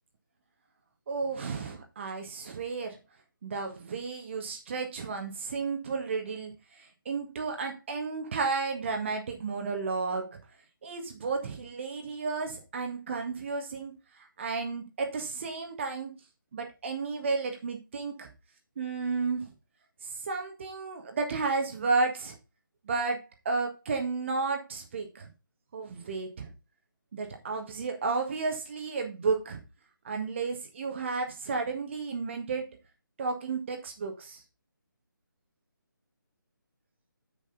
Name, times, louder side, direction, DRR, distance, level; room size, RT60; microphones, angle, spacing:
voice 1, 1.1-3.0 3.4-10.4 10.8-16.1 16.5-18.3 18.8-19.5 20.0-22.4 22.8-25.3 25.7-26.5 27.1-29.6 30.0-32.8 33.2-34.4, right 4 dB, 35° right, 1.7 m, -32 dB
7.3 x 7.0 x 4.0 m
figure-of-eight pair, 150°, 11 cm